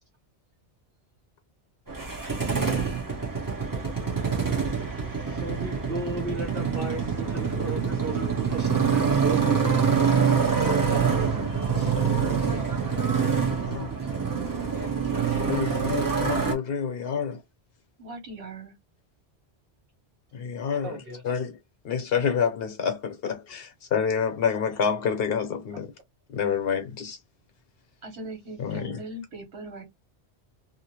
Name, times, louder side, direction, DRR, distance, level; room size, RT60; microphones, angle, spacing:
Motorcycle, 1.9-16.5, right 6 dB, 20° right, 0.8 m, -25 dB
voice 1, 5.3-12.5 14.6-14.7 15.1-15.8 20.8-21.2, right 3 dB, 60° right, 1.3 m, -36 dB
voice 2, 13.2-13.9 15.5-17.4 20.3-21.6 21.8-25.9 26.3-27.2 28.6-29.0, left 6 dB, 65° left, 0.9 m, -28 dB
voice 3, 18.0-18.7 28.0-29.8, right 2 dB, 75° right, 1.4 m, -40 dB
2.8 x 2.0 x 2.9 m
omnidirectional pair, 1.1 m